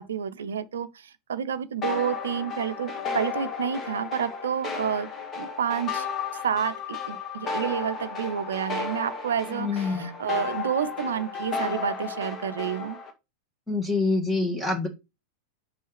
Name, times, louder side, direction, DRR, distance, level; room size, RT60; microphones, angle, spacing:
voice 1, 0.0-5.1 5.4-13.0, right 8 dB, 65° right, 0.6 m, -30 dB
sound 1, 1.8-13.1, left 5 dB, 25° left, 1.8 m, -33 dB
voice 2, 9.5-10.1 13.7-14.9, left 3 dB, 5° left, 1.9 m, -26 dB
5.7 x 5.4 x 5.1 m
figure-of-eight pair, 90°, 0 cm